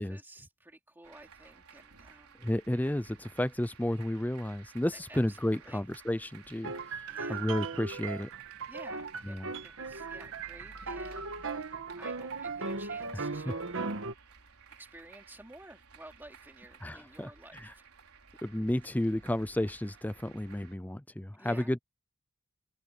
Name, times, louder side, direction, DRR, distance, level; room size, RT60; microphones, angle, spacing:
voice 1, 0.0-2.4 5.1-5.8 7.1-7.6 8.7-14.0 14.8-17.9 21.4-21.8, right 1 dB, 10° right, 3.0 m, -53 dB
sound 1, 1.0-20.8, right 5 dB, 80° right, 4.5 m, -55 dB
voice 2, 2.4-7.0 7.3-8.3 9.2-9.5 13.1-13.5 16.8-17.3 17.6-17.7 18.4-21.8, left 1 dB, 5° left, 0.5 m, -32 dB
sound 2, 6.6-14.1, right 4 dB, 60° right, 1.6 m, -38 dB
open air
head